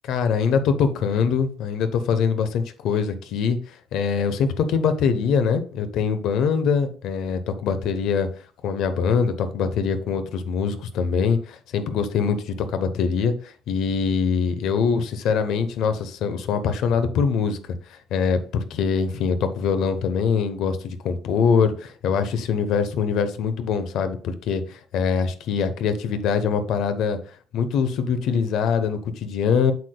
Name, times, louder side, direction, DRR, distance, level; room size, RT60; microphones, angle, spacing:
voice 1, 0.1-8.3 8.6-17.6 17.9-27.2 27.5-29.7, left 6 dB, 70° left, 0.9 m, -23 dB
8.1 x 6.7 x 2.3 m
cardioid pair, 145°, 0 cm